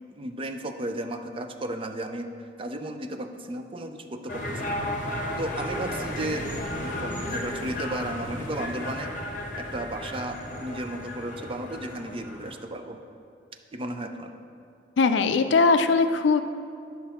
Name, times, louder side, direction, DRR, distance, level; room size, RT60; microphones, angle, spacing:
voice 1, 0.1-2.3 2.6-4.8 5.4-6.5 6.8-9.1 9.5-13.0 13.7-14.3, right 1 dB, 30° right, 6 dB, 0.5 m, -34 dB
sound 1, 4.3-12.6, left 1 dB, 45° left, 1.1 m, -34 dB
voice 2, 15.0-16.4, left 4 dB, 75° left, 9 dB, 0.4 m, -20 dB
10.0 x 5.8 x 4.3 m, 2.4 s
head